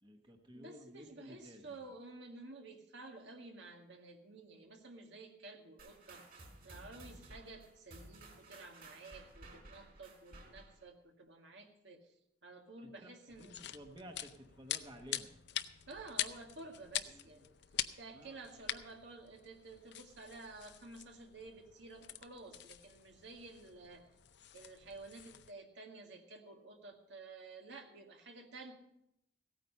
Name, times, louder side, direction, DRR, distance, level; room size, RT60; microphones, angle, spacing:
voice 1, 0.0-1.9 12.8-13.1 13.4-15.3 17.1-17.4 18.1-18.4, equal, 25° right, 3 dB, 1.2 m, -54 dB
voice 2, 0.5-12.1 12.4-13.6 15.9-17.6 18.0-24.1 24.5-28.7, right 3 dB, 75° right, 3 dB, 1.9 m, -52 dB
sound 1, 5.8-10.9, right 2 dB, 55° right, 4.4 m, -55 dB
sound 2, 13.3-25.5, left 11 dB, 65° left, 0.6 m, -45 dB
16.5 x 9.1 x 5.5 m, 0.78 s
head